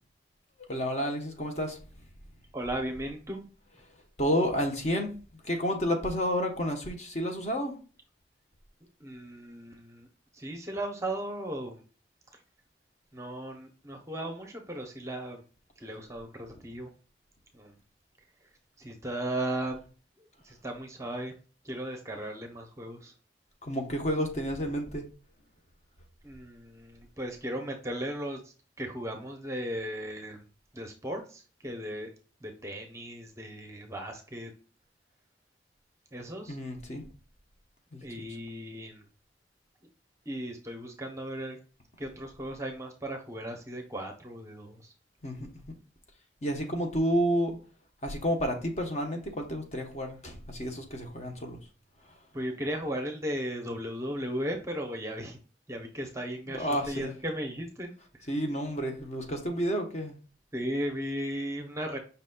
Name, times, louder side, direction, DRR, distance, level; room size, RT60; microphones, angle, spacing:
voice 1, 0.6-1.8 4.2-7.8 23.6-25.1 36.5-37.0 37.9-38.0 45.2-45.6 46.4-47.6 48.0-51.6 52.0-52.2 56.5-57.1 58.3-60.2, equal, 40° left, 3 dB, 0.9 m, -30 dB
voice 2, 2.5-3.5 9.0-10.1 10.3-11.8 13.1-15.4 15.8-16.9 17.5-17.7 18.8-19.9 20.2-21.3 21.6-23.1 26.2-30.5 30.7-32.1 32.4-34.5 36.1-36.6 38.0-39.0 40.3-41.6 42.0-44.9 52.3-55.4 55.7-57.9 60.5-62.0, right 1 dB, 15° right, 3 dB, 0.7 m, -36 dB
5.5 x 4.0 x 2.2 m, 0.36 s
head